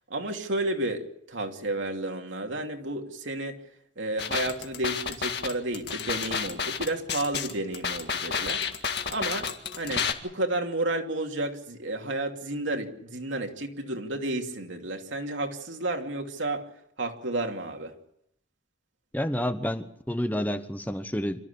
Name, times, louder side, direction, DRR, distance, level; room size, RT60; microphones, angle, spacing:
voice 1, 0.1-3.6 4.0-8.6 9.1-9.5 9.8-16.7 17.0-18.0, right 2 dB, 85° right, 2.8 m, -31 dB
sound 1, 4.2-10.1, left 6 dB, 60° left, 2.0 m, -30 dB
voice 2, 19.1-21.4, equal, 10° left, 0.9 m, -29 dB
27.0 x 14.0 x 8.5 m
head